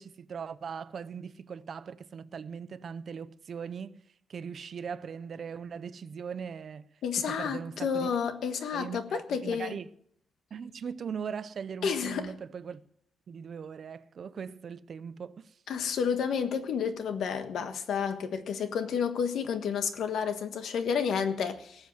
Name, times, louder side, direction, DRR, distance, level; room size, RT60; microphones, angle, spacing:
voice 1, 0.0-4.0 4.3-6.9 7.2-8.2 8.7-9.9 10.5-12.8 13.3-15.6, right 6 dB, 45° right, 0.6 m, -40 dB
voice 2, 7.0-9.7 11.8-12.3 15.7-21.9, left 7 dB, 75° left, 1.4 m, -30 dB
18.0 x 7.4 x 7.6 m
wide cardioid pair, 175°, 0 cm